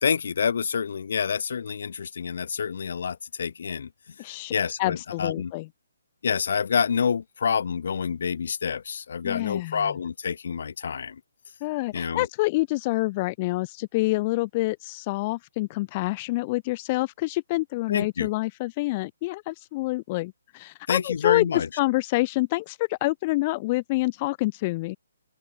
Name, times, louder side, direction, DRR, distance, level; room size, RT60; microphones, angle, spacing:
voice 1, 0.0-3.9 4.5-5.5 6.2-11.2 11.9-12.3 17.9-18.3 20.9-21.7, left 6 dB, 55° left, 2.9 m, -27 dB
voice 2, 4.2-4.5 4.8-5.7 9.2-10.0 11.6-25.0, left 21 dB, 30° left, 2.4 m, -27 dB
open air
figure-of-eight pair, 135°, 0 cm